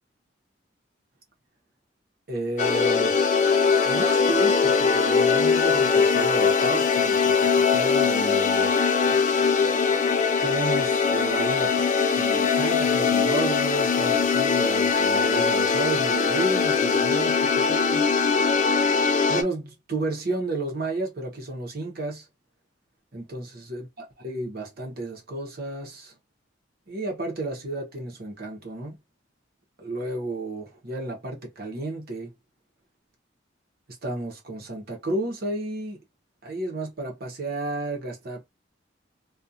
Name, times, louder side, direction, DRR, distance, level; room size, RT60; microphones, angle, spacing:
voice 1, 2.3-3.2 3.8-8.8 10.4-11.8 12.1-18.1 19.3-22.3 23.1-23.9 24.2-26.1 26.9-29.0 29.8-32.3 34.0-36.0 36.4-38.4, right 2 dB, 50° right, 0.9 m, -32 dB
sound 1, 2.6-19.4, left 5 dB, 40° left, 0.4 m, -21 dB
2.4 x 2.4 x 2.7 m
head